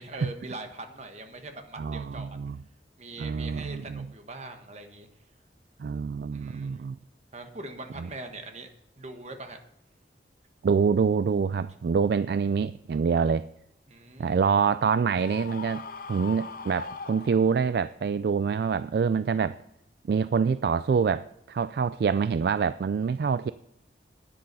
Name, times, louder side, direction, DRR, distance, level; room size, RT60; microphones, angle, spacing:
voice 1, 0.0-2.4 3.0-5.1 6.3-6.9 7.3-8.7 9.0-9.6 13.9-14.3, right 2 dB, 40° right, 6 dB, 1.4 m, -42 dB
voice 2, 1.8-2.6 3.2-4.1 5.8-7.0 8.0-8.1 10.6-13.5 14.2-15.8 16.1-19.6 20.1-23.5, right 6 dB, 60° right, 15 dB, 0.3 m, -26 dB
Screaming, 15.2-17.9, left 4 dB, 50° left, 0.7 m, -40 dB
10.5 x 10.0 x 5.4 m, 0.80 s
head